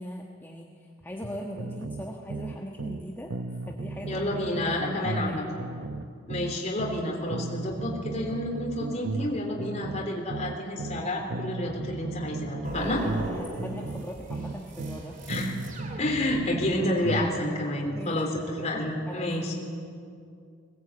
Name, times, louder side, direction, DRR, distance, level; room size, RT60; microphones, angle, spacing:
voice 1, 0.0-3.3 3.7-4.2 4.6-5.4 12.7-15.2 17.9-18.2 19.1-19.3, equal, 10° left, -1 dB, 1.4 m, -40 dB
sound 1, 1.6-3.0 3.3-7.0 7.3-11.0 11.3-15.0 15.3-17.4, right 3 dB, 65° right, 0.9 m, -35 dB
voice 2, 4.1-5.4 6.3-13.0 15.3-15.5 16.0-19.5, left 1 dB, 35° left, -1 dB, 3.7 m, -29 dB
sound 2, 12.6-16.8, right 1 dB, 40° right, 3.2 m, -40 dB
21.0 x 19.0 x 8.8 m, 2.4 s
head